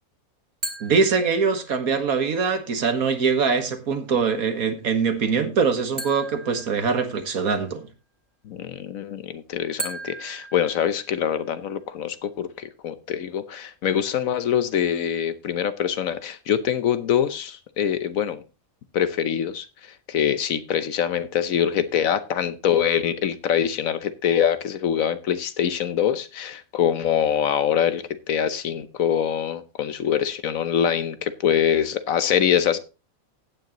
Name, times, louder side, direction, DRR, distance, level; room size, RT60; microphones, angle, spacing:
sound 1, 0.6-1.9 6.0-7.5 9.8-11.5, right 2 dB, 25° right, 2.4 m, -37 dB
voice 1, 0.8-7.9, right 5 dB, 75° right, 1.9 m, -23 dB
voice 2, 8.4-18.4 18.9-19.7 20.1-32.8, left 9 dB, 70° left, 1.2 m, -24 dB
15.5 x 9.3 x 3.0 m
omnidirectional pair, 1.5 m